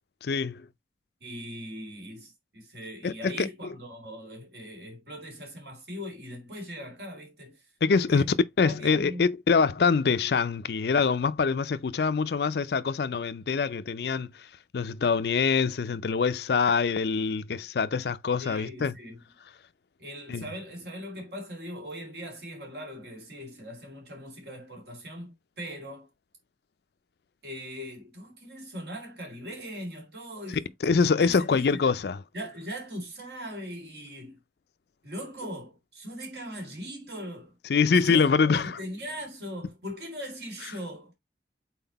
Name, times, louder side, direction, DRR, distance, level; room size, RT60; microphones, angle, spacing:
voice 1, 0.2-0.7 3.0-3.5 7.8-8.2 8.6-14.5 14.7-18.9 20.3-20.4 30.8-32.2 37.7-38.7, left 5 dB, 65° left, 0.4 m, -24 dB
voice 2, 1.2-7.6 7.9-8.3 8.6-9.2 18.4-19.2 20.0-26.1 27.4-30.7 31.0-31.8 32.3-34.4 35.0-37.5 38.0-41.1, equal, 70° right, 2.3 m, -40 dB
5.8 x 4.3 x 4.0 m
head